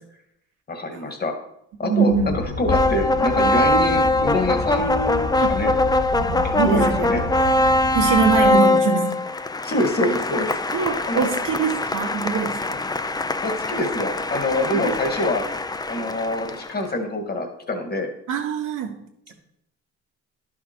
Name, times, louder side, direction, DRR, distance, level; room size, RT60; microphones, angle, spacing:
voice 1, 0.7-1.3 1.8-5.7 6.4-7.2 9.6-10.5 11.1-11.3 13.4-15.5 15.9-18.1, left 1 dB, 30° left, 5 dB, 1.8 m, -25 dB
voice 2, 1.8-2.3 5.4-5.6 6.2-7.2 7.9-9.1 10.7-12.8 14.8-14.9 18.3-19.0 19.3-19.4, right 6 dB, 85° right, 1 dB, 1.5 m, -23 dB
sound 1, 2.1-8.5, left 2 dB, 65° left, 1.6 m, -30 dB
sound 2, 2.7-16.9, left 2 dB, 15° left, 0.5 m, -22 dB
11.0 x 5.9 x 4.5 m, 0.77 s
cardioid pair, 90°, 30 cm